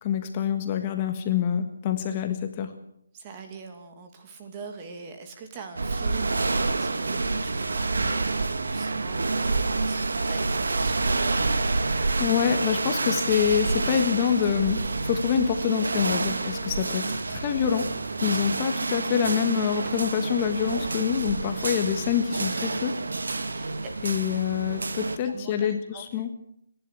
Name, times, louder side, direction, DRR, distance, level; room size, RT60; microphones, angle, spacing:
voice 1, 0.0-2.7 12.2-17.9 18.2-23.0 24.0-26.3, left 9 dB, 25° left, 7 dB, 1.5 m, -26 dB
voice 2, 3.1-8.3 8.6-11.5 23.5-23.9 25.2-26.1, right 4 dB, 20° right, 5 dB, 2.5 m, -43 dB
sound 1, 5.8-25.2, right 3 dB, 80° right, 2.0 m, -28 dB
29.0 x 11.0 x 8.3 m, 0.75 s
hypercardioid pair, 165°, 0 cm